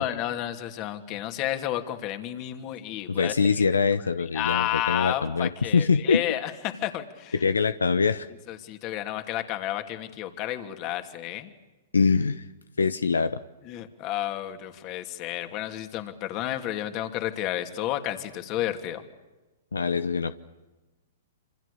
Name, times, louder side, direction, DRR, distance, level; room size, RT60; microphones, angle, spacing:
voice 1, 0.0-3.3 4.3-7.4 8.5-11.5 13.6-19.0, left 13 dB, 40° left, 7 dB, 2.9 m, -31 dB
voice 2, 3.1-6.2 7.3-8.3 11.9-12.4 12.8-13.4 19.7-20.3, left 5 dB, 90° left, 13 dB, 0.9 m, -24 dB
27.0 x 26.5 x 7.0 m, 1.1 s
hypercardioid pair, 120°, 0 cm